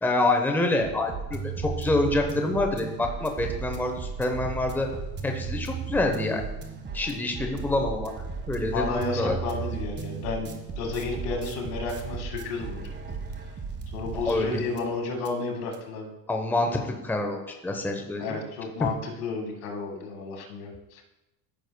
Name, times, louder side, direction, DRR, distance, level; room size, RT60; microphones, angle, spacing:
voice 1, 0.0-4.9 5.2-6.4 6.9-8.1 8.5-9.4 14.1-14.6 16.3-18.4 18.8-18.9, left 2 dB, 5° left, 3 dB, 0.9 m, -27 dB
sound 1, 0.8-14.9 15.2-15.3 15.7-15.8, right 5 dB, 25° right, 1.2 m, -35 dB
voice 2, 8.6-12.9 13.9-16.1 18.2-21.0, left 4 dB, 80° left, 2 dB, 2.1 m, -32 dB
14.5 x 6.2 x 2.3 m, 0.98 s
supercardioid pair, 110°, 46 cm